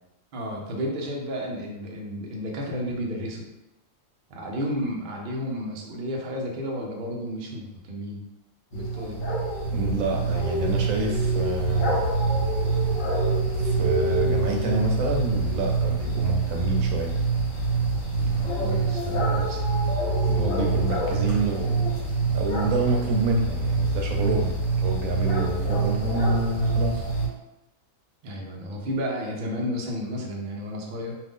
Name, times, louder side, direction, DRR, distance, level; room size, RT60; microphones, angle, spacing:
voice 1, 0.3-3.5 4.3-8.2 8.7-9.2 18.2-19.6 28.2-31.2, equal, 55° right, -1 dB, 0.6 m, -32 dB
sound 1, 8.7-27.3, right 3 dB, 75° left, 1.2 m, -25 dB
voice 2, 9.7-12.0 13.6-17.1 20.2-21.9 22.3-27.0, right 1 dB, 80° right, 1 dB, 1.0 m, -28 dB
2.6 x 2.5 x 3.5 m, 0.95 s
omnidirectional pair, 1.4 m